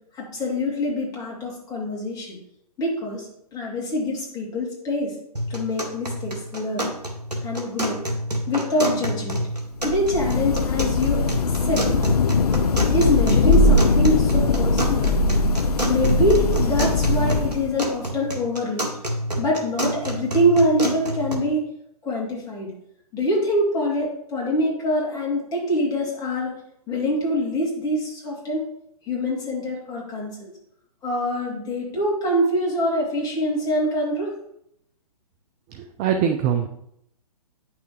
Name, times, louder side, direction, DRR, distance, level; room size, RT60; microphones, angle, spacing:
voice 1, 0.1-2.4 2.8-5.1 5.5-6.9 7.4-8.0 8.5-9.4 9.8-11.9 12.9-15.1 15.9-18.9 19.4-21.6 22.0-22.7 23.1-26.5 26.9-28.6 29.0-30.5 31.0-34.3, equal, 20° left, -3 dB, 2.8 m, -24 dB
sound 1, 5.4-21.4, right 1 dB, 85° right, 1.9 m, -28 dB
Thunder / Rain, 9.8-17.8, left 3 dB, 70° left, 0.5 m, -20 dB
voice 2, 35.7-36.7, right 8 dB, 15° right, 6 dB, 0.3 m, -23 dB
9.5 x 6.0 x 3.1 m, 0.76 s
figure-of-eight pair, 125°, 20 cm